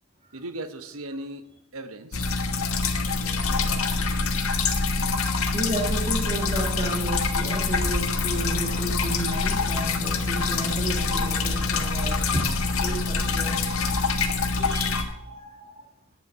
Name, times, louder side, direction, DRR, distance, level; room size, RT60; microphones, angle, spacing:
voice 1, 0.3-2.3, right 1 dB, 80° right, 10 dB, 1.2 m, -37 dB
sound 1, 2.1-15.0, left 4 dB, 80° left, 1.5 m, -25 dB
voice 2, 5.5-12.5 12.8-14.3 14.6-15.9, right 1 dB, 30° right, -1 dB, 1.7 m, -33 dB
sound 2, 7.7-13.9, left 2 dB, 40° left, 1.3 m, -40 dB
10.0 x 8.5 x 7.5 m, 0.76 s
head